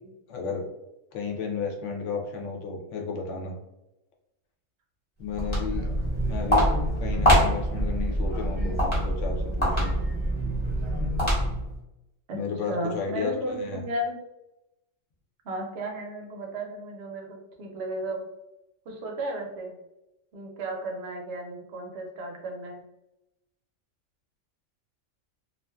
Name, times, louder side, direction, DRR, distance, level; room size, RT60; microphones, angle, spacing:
voice 1, 0.3-0.6 1.1-3.6 5.2-5.9 6.2-6.6 7.0-9.9 12.3-13.3 13.6-13.8, left 5 dB, 70° left, 1 dB, 0.8 m, -33 dB
Walk footsteps, 5.2-11.7, equal, 25° left, 0.9 m, -25 dB
voice 2, 12.7-14.2 15.4-18.3 18.9-19.7 20.3-22.8, right 1 dB, 60° right, 1 dB, 0.8 m, -34 dB
2.4 x 2.4 x 2.2 m, 0.91 s
omnidirectional pair, 1.4 m